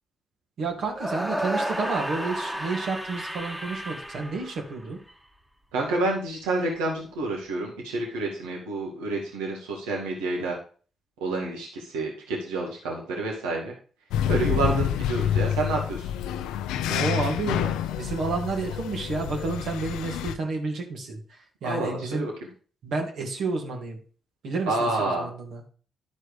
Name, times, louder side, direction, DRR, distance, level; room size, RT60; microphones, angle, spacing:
voice 1, 0.6-5.0 16.9-22.3 22.8-24.0 24.4-25.6, right 3 dB, 70° right, 1 dB, 2.6 m, -30 dB
sound 1, 0.9-5.1, right 1 dB, 5° right, 1.4 m, -32 dB
voice 2, 5.7-10.6 11.2-13.7 14.3-16.1 21.6-22.3 24.7-25.3, right 2 dB, 90° right, -1 dB, 2.0 m, -29 dB
sound 2, 14.1-20.3, left 10 dB, 85° left, 0.5 m, -28 dB
11.5 x 4.5 x 5.0 m, 0.41 s
hypercardioid pair, 45°, 0 cm